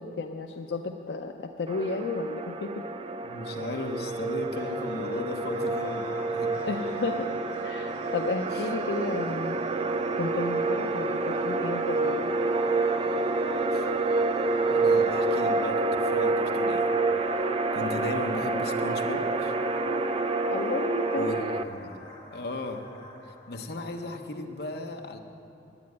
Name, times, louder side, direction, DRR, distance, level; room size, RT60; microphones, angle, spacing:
voice 1, 0.0-2.8 6.6-7.3 7.6-9.6 10.2-12.3 20.5-21.6, left 3 dB, 80° left, 3 dB, 0.5 m, -33 dB
sound 1, 1.7-21.6, right 3 dB, 30° right, 0.4 m, -28 dB
voice 2, 3.2-6.6 8.5-8.7 13.7-13.9 14.7-16.9 17.7-19.5 21.2-22.1 22.3-22.9 23.3-25.2, left 2 dB, 65° left, 4 dB, 0.9 m, -36 dB
sound 2, 3.5-16.4, right 1 dB, 75° right, 1.2 m, -50 dB
sound 3, 5.1-24.3, left 1 dB, 25° left, 2.0 m, -47 dB
9.9 x 8.5 x 9.5 m, 2.7 s
head